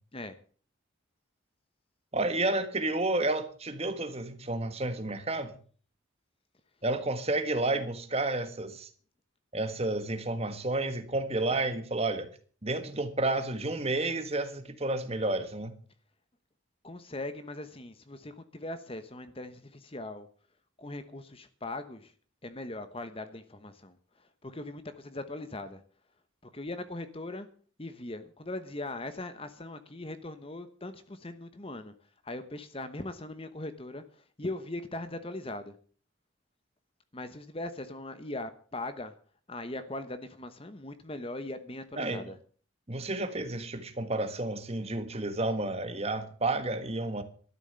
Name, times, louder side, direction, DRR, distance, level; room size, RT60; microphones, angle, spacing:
voice 1, 2.1-5.6 6.8-8.9 9.5-12.3 12.6-15.7 42.0-42.3 42.9-47.2, right 2 dB, 30° right, 1.5 m, -31 dB
voice 2, 16.8-20.3 20.8-22.1 22.4-25.8 26.4-27.5 27.8-31.9 32.2-35.8 37.1-39.1 39.5-42.4, left 2 dB, 25° left, 1.1 m, -40 dB
13.0 x 11.0 x 6.9 m
head